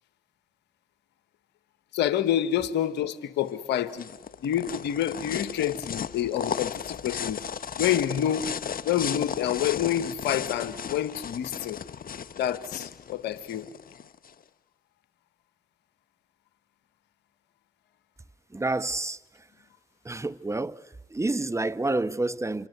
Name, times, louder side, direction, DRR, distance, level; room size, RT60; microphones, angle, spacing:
voice 1, 1.9-4.1 4.4-7.4 7.8-8.5 8.8-11.8 12.4-13.7, left 10 dB, 80° left, 1.2 m, -28 dB
sound 1, 3.5-14.3, left 7 dB, 55° left, 1.0 m, -35 dB
voice 2, 18.5-19.2 20.0-20.8 21.1-22.7, right 2 dB, 15° right, 1.0 m, -28 dB
27.0 x 23.0 x 8.0 m
hypercardioid pair, 45°, 17 cm